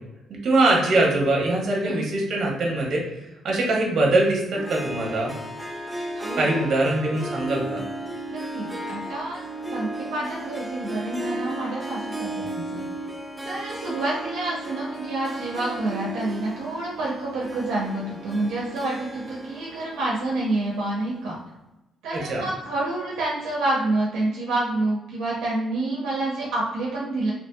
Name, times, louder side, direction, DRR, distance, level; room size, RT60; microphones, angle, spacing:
voice 1, 0.4-3.0 3.4-5.3 6.3-7.8 22.1-22.4, right 2 dB, 60° right, -1 dB, 0.8 m, -22 dB
Harp, 4.5-21.0, right 1 dB, 10° right, 0.4 m, -35 dB
voice 2, 6.1-6.5 8.3-9.4 9.7-12.8 13.4-21.4 22.0-27.3, right 2 dB, 90° right, -4 dB, 0.6 m, -28 dB
2.9 x 2.6 x 2.2 m, 0.97 s
cardioid pair, 90°, 0 cm